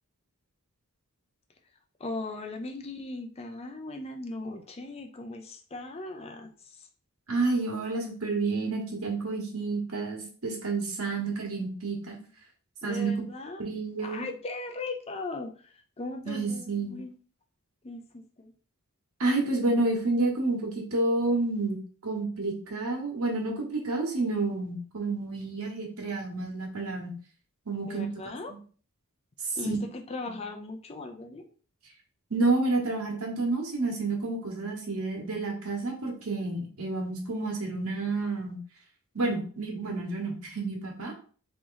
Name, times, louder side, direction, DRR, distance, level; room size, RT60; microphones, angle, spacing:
voice 1, 2.0-6.9 12.8-13.6 14.0-17.1 17.8-18.5 27.9-28.5 29.6-31.5, left 2 dB, 25° left, 4 dB, 0.5 m, -38 dB
voice 2, 7.3-12.2 12.8-13.1 13.6-14.3 16.2-16.9 19.2-27.1 27.7-28.1 29.6-29.8 30.3-30.4 32.3-38.6 39.1-41.1, right 3 dB, 70° right, 1 dB, 1.4 m, -29 dB
3.8 x 3.0 x 3.9 m, 0.41 s
head